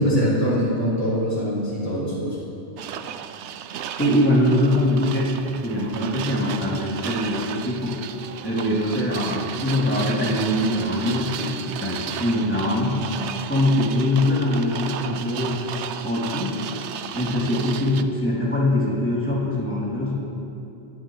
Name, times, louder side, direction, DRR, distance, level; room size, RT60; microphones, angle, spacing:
voice 1, 0.0-2.4, equal, 45° left, -11 dB, 3.8 m, -23 dB
sound 1, 2.8-18.0, right 9 dB, 85° right, 0.9 m, -34 dB
voice 2, 3.9-5.3 5.6-7.9 8.4-12.9 13.5-16.5 17.1-20.1, left 1 dB, 10° left, -7 dB, 2.7 m, -23 dB
20.0 x 11.5 x 3.1 m, 2.7 s
omnidirectional pair, 1.1 m